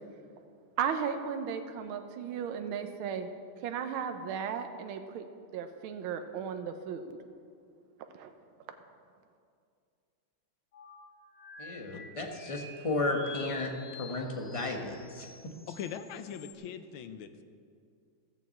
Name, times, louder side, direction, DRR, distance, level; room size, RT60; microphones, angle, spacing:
voice 1, 0.8-3.3 3.6-5.2 5.5-7.2 8.1-8.3, right 7 dB, 80° right, 7 dB, 1.6 m, -35 dB
sound 1, 10.7-16.5, left 4 dB, 55° left, 0.7 m, -50 dB
voice 2, 11.6-15.3, left 2 dB, 20° left, 1 dB, 1.0 m, -34 dB
voice 3, 15.7-17.4, left 8 dB, 80° left, 9 dB, 1.5 m, -41 dB
14.0 x 7.1 x 7.8 m, 2.3 s
omnidirectional pair, 2.3 m